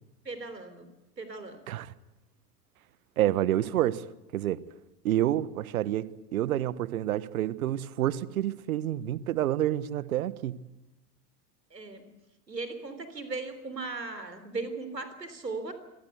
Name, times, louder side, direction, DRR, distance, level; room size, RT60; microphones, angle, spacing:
voice 1, 0.3-0.9 1.2-1.6 11.7-12.1 12.5-15.7, right 3 dB, 80° right, 3.6 m, -37 dB
voice 2, 3.2-4.1 4.3-4.6 5.0-10.6, right 13 dB, 60° right, 1.4 m, -28 dB
26.0 x 18.5 x 8.1 m
figure-of-eight pair, 90°, 49 cm